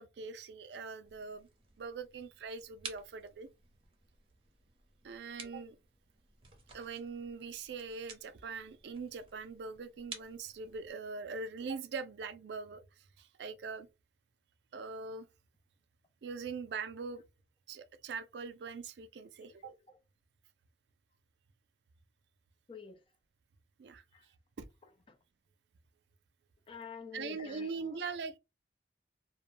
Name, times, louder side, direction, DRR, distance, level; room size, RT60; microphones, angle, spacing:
voice 1, 0.0-1.5 1.8-3.5 5.0-5.8 6.7-12.8 13.2-13.9 14.7-15.3 16.2-17.2 17.7-19.7 23.8-24.0 24.6-24.7 27.1-28.4, right 4 dB, 75° right, 0.4 m, -42 dB
sound 1, 1.0-10.9, right 5 dB, 30° right, 0.7 m, -53 dB
voice 2, 19.4-20.0 22.7-23.0 24.1-24.3 25.1-25.2 26.7-28.0, left 6 dB, 30° left, 0.4 m, -49 dB
2.4 x 2.1 x 3.1 m
head